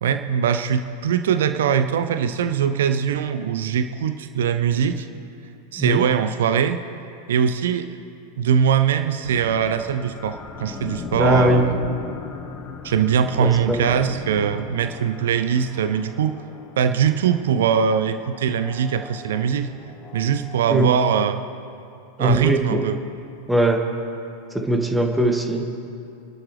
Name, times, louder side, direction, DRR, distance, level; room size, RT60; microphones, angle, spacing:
voice 1, 0.0-5.1 5.7-6.8 7.3-7.9 8.4-11.8 12.8-16.4 16.8-19.7 20.1-21.4 22.2-23.0, right 7 dB, 60° right, 9 dB, 0.7 m, -21 dB
sound 1, 9.2-21.2, left 5 dB, 30° left, 1.3 m, -38 dB
voice 2, 11.2-11.7 13.3-14.0 20.7-20.9 22.2-22.8 23.5-23.9 24.5-25.7, right 1 dB, 5° right, 4 dB, 1.6 m, -20 dB
28.5 x 12.0 x 3.3 m, 2.7 s
figure-of-eight pair, 90°, 0 cm